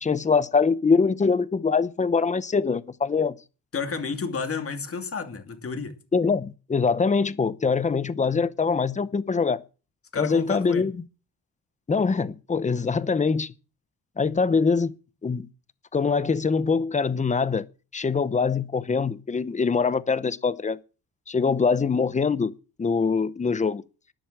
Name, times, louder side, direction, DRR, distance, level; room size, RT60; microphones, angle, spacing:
voice 1, 0.0-3.4 6.1-9.6 10.2-10.9 11.9-13.5 14.2-14.9 15.2-15.5 15.9-17.7 17.9-20.8 21.3-22.5 22.8-23.8, left 5 dB, 20° left, 0.7 m, -23 dB
voice 2, 3.7-5.9 10.1-10.9, left 5 dB, 35° left, 2.6 m, -31 dB
12.5 x 11.0 x 7.4 m
wide cardioid pair, 160°, 38 cm